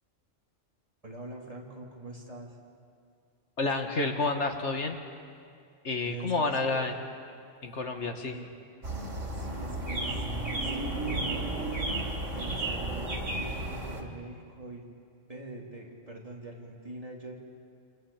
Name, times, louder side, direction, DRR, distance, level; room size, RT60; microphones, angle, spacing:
voice 1, 1.0-2.6 6.0-6.9 8.3-8.5 9.3-10.2 10.5-11.5 12.3-14.9 15.3-17.3, right 2 dB, 30° right, -2 dB, 3.7 m, -43 dB
voice 2, 3.6-5.0 5.8-6.9 7.6-8.4, left 3 dB, 70° left, 4 dB, 2.0 m, -29 dB
sound 1, 8.8-14.0, right 2 dB, 80° right, 3.5 m, -33 dB
28.5 x 27.5 x 7.3 m, 2.3 s
omnidirectional pair, 1.3 m